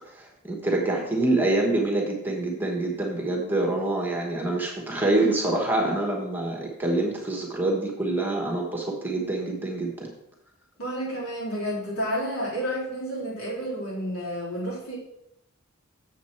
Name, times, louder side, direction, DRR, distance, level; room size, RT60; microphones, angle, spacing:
voice 1, 0.1-10.1, right 2 dB, 10° right, 0 dB, 1.2 m, -26 dB
voice 2, 10.8-15.0, equal, 75° left, -6 dB, 3.6 m, -30 dB
7.3 x 7.3 x 4.3 m, 0.82 s
head